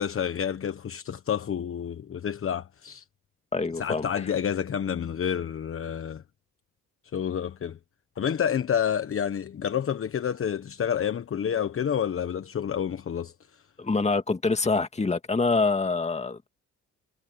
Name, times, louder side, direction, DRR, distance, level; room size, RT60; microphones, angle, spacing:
voice 1, 0.0-3.0 3.8-6.2 7.1-7.8 8.2-13.3, left 8 dB, 45° left, 1.2 m, -29 dB
voice 2, 3.5-4.1 13.8-16.5, left 3 dB, 20° left, 2.1 m, -25 dB
cardioid pair, 90°, 30 cm